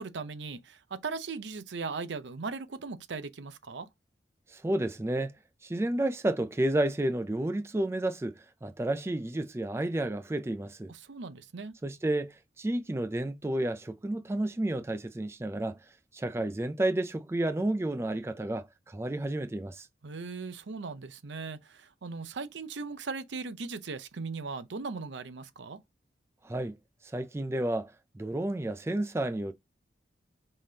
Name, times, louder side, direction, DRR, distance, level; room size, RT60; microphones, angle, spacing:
voice 1, 0.0-3.9 10.9-11.7 20.0-25.8, right 4 dB, 85° right, 0.7 m, -38 dB
voice 2, 4.5-5.3 5.6-10.9 11.8-15.8 16.1-19.9 26.4-26.8 27.1-29.5, right 1 dB, 15° right, 0.3 m, -31 dB
5.5 x 3.4 x 2.8 m
head